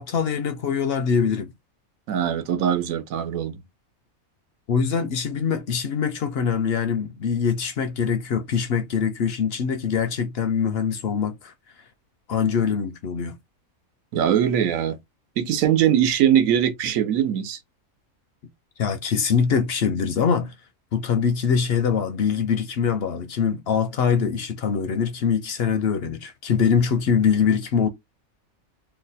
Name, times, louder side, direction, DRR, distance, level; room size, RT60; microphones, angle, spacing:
voice 1, 0.0-1.5 4.7-11.5 12.3-13.4 18.8-20.5 20.9-27.9, left 6 dB, 65° left, 0.6 m, -23 dB
voice 2, 2.1-3.6 14.1-15.0 15.4-17.6, right 9 dB, 80° right, 1.1 m, -21 dB
2.8 x 2.2 x 3.9 m
omnidirectional pair, 1.4 m